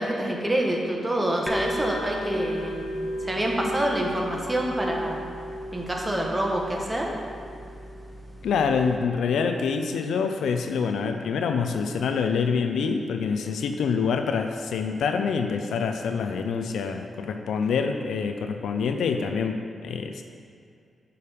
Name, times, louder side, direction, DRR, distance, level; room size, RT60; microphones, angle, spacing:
voice 1, 0.0-5.2 5.7-7.1, right 1 dB, 20° right, -1 dB, 1.6 m, -27 dB
sound 1, 1.5-9.0, equal, ahead, 1.3 m, -34 dB
voice 2, 8.4-20.2, left 5 dB, 85° left, 6 dB, 0.4 m, -26 dB
6.7 x 5.3 x 6.6 m, 2.5 s
cardioid pair, 60°, 0 cm